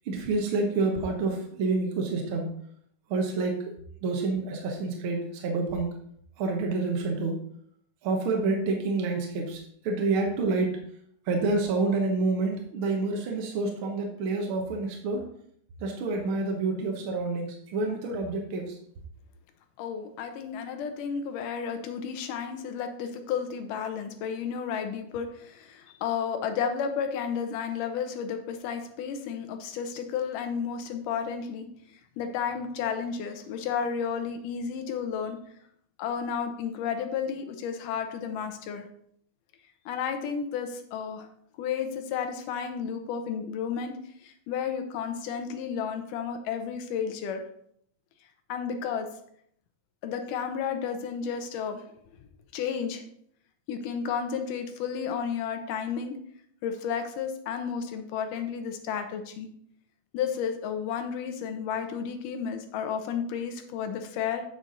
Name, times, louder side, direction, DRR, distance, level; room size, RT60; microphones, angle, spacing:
voice 1, 0.1-2.5 3.1-3.6 4.0-5.9 6.4-7.4 8.0-10.8 11.3-15.2 15.8-18.8, right 3 dB, 60° right, 2 dB, 1.4 m, -28 dB
voice 2, 19.8-31.7 32.2-35.4 36.0-38.9 39.9-41.3 41.6-47.4 48.5-49.1 50.0-51.8 52.5-53.0 53.7-56.2 56.6-59.5 60.1-64.4, left 7 dB, 90° left, 6 dB, 2.5 m, -32 dB
8.5 x 6.0 x 3.9 m, 0.67 s
omnidirectional pair, 3.6 m